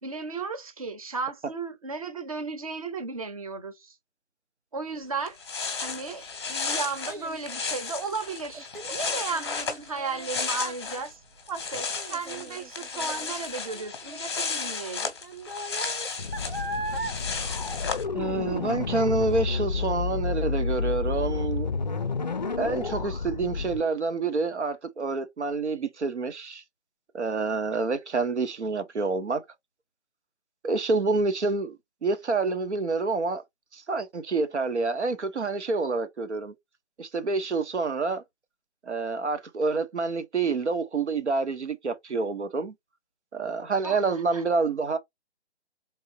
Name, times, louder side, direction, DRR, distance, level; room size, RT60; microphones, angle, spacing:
voice 1, 0.0-4.0 4.7-5.4 5.8-11.2 11.5-15.1 43.8-44.4, right 4 dB, 30° right, 0.8 m, -35 dB
sound 1, 5.0-5.1 5.3-11.1 11.4-18.0, left 5 dB, 25° left, 0.8 m, -34 dB
Child speech kid speaking, 5.9-18.5 18.9-19.3 19.8-19.9, right 2 dB, 55° right, 1.0 m, -40 dB
sound 2, 16.2-23.8, left 4 dB, 40° left, 0.4 m, -30 dB
voice 2, 18.1-21.7 22.6-26.6 27.1-29.4 30.6-31.8 32.0-33.4 33.7-36.5 37.0-38.2 38.8-42.7 43.3-45.0, right 3 dB, 85° right, 1.1 m, -27 dB
3.9 x 3.6 x 2.8 m
hypercardioid pair, 165°, 33 cm